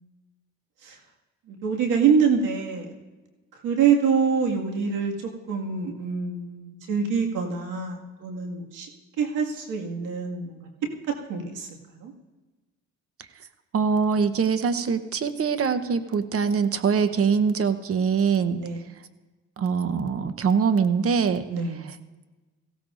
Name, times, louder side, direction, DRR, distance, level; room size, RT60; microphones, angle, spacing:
voice 1, 1.5-2.9 3.5-8.9 9.2-10.6 11.1-12.1 18.5-18.8 21.5-21.8, right 6 dB, 90° right, 1 dB, 2.0 m, -25 dB
voice 2, 13.7-18.6 19.6-21.5, right 6 dB, 50° right, 11 dB, 0.9 m, -23 dB
18.5 x 16.0 x 2.6 m, 1.2 s
cardioid pair, 90°, 30 cm